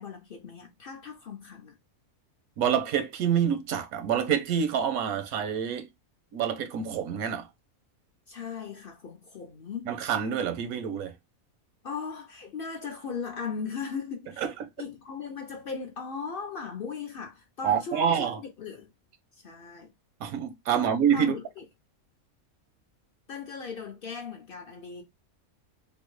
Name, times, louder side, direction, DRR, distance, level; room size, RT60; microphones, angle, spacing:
voice 1, 0.0-1.8 8.3-10.0 11.8-14.5 14.8-18.9 19.3-19.9 20.7-21.6 23.3-25.0, left 5 dB, 55° left, 0.6 m, -38 dB
voice 2, 2.6-5.9 6.3-7.5 9.9-11.1 14.4-14.5 17.6-18.4 20.2-21.4, right 8 dB, 90° right, 1.1 m, -27 dB
3.5 x 2.1 x 3.0 m
omnidirectional pair, 1.5 m